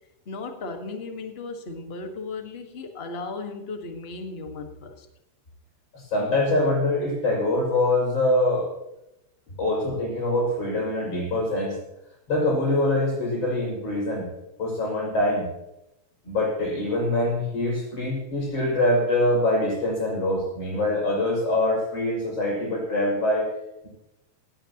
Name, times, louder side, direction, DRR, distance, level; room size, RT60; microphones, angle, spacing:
voice 1, 0.2-5.1 9.5-9.6, left 3 dB, 30° left, 4 dB, 1.2 m, -36 dB
voice 2, 6.1-8.7 9.6-11.8 12.3-14.3 14.6-15.4 16.3-23.5, left 1 dB, 55° left, -2 dB, 7.1 m, -24 dB
18.0 x 17.0 x 3.0 m, 0.90 s
omnidirectional pair, 3.3 m